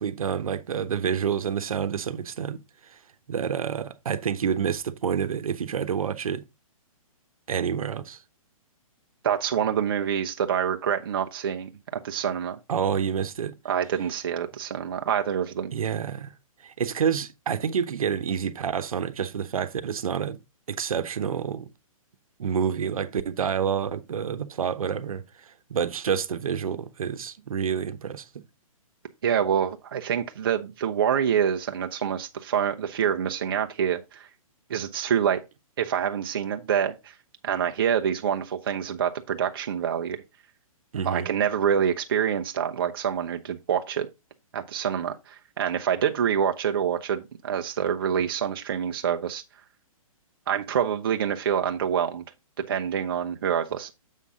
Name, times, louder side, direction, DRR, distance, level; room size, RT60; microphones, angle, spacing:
voice 1, 0.0-3.0 3.3-6.4 7.5-8.2 12.7-13.6 15.7-16.3 16.6-20.4 20.7-21.7 22.4-28.3 40.9-41.3, right 7 dB, 75° right, 1.0 m, -28 dB
voice 2, 9.2-11.7 12.0-12.6 13.6-15.7 29.2-34.3 34.7-35.4 35.8-37.1 37.4-40.2 41.0-44.1 44.5-49.4 50.5-52.2 52.7-53.9, right 8 dB, 40° right, 0.6 m, -26 dB
7.3 x 5.6 x 3.6 m
hypercardioid pair, 175°, 18 cm